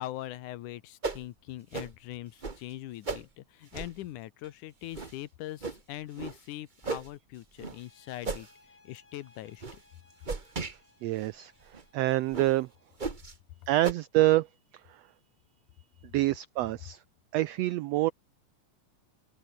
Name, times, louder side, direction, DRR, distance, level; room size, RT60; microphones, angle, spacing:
voice 1, 0.0-9.8, left 14 dB, 85° left, 2.5 m, -42 dB
sound 1, 1.0-1.3 1.7-1.9 2.4-2.6 3.1-3.2 3.7-4.0 4.4-4.5 4.9-5.1 5.6-5.8 6.2-6.4 6.8-7.1 7.6-7.8 8.2-8.5 9.0-9.2 9.6-9.8 10.2-10.8 11.2-11.3 11.7-11.8 12.3-12.5 13.0-13.3 13.8-13.9, right 4 dB, 40° right, 0.7 m, -35 dB
sound 2, 7.7-13.0, left 3 dB, 60° left, 8.3 m, -63 dB
voice 2, 11.0-12.7 13.7-15.0 16.1-17.0 17.3-18.1, right 16 dB, 85° right, 1.4 m, -27 dB
omnidirectional pair, 3.6 m